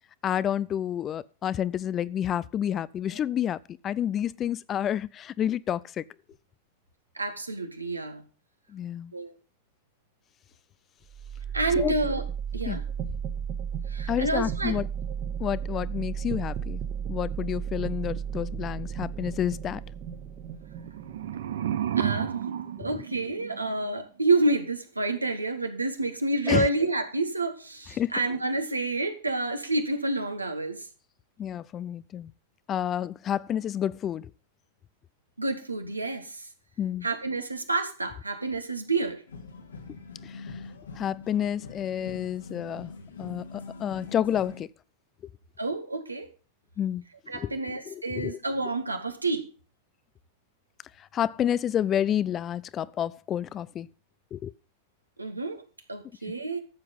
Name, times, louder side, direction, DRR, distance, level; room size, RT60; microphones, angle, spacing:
voice 1, 0.2-6.0 8.7-9.1 11.8-11.9 12.7-12.8 14.1-14.9 15.4-16.8 17.1-19.8 26.5-26.7 28.0-28.1 31.4-32.3 32.7-34.3 36.8-37.1 40.2-40.4 41.0-42.9 43.2-44.7 46.8-47.0 47.3-47.5 47.9-48.4 51.1-53.9 54.3-54.5, left 10 dB, 30° left, 0.5 m, -29 dB
voice 2, 7.2-8.2 9.1-9.4 11.5-12.2 12.5-12.8 13.9-14.7 22.0-22.4 22.8-30.9 35.4-36.5 37.0-39.2 45.6-46.3 47.3-49.5 55.2-55.6 55.9-56.6, right 2 dB, 80° right, 1.8 m, -29 dB
sound 1, 11.1-23.0, right 8 dB, 40° right, 1.7 m, -34 dB
sound 2, 20.7-23.8, right 10 dB, 60° right, 0.7 m, -31 dB
sound 3, 39.3-44.6, left 4 dB, 70° left, 2.2 m, -43 dB
14.0 x 7.8 x 5.4 m
figure-of-eight pair, 90°, 0 cm